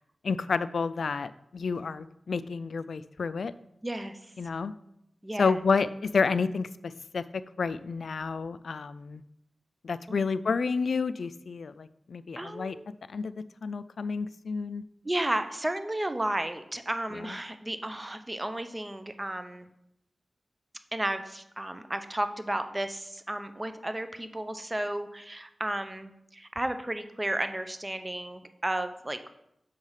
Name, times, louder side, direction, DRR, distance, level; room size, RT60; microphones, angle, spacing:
voice 1, 0.2-3.5 4.4-4.7 5.4-9.2 9.8-12.8 13.1-13.3 13.6-14.8 17.1-17.4, left 5 dB, 80° left, 15 dB, 0.3 m, -30 dB
voice 2, 3.8-4.2 5.2-5.6 10.1-10.3 12.4-12.9 15.0-19.7 20.9-29.2, right 1 dB, 25° right, 9 dB, 0.8 m, -33 dB
6.4 x 4.8 x 5.6 m, 0.79 s
cardioid pair, 45°, 0 cm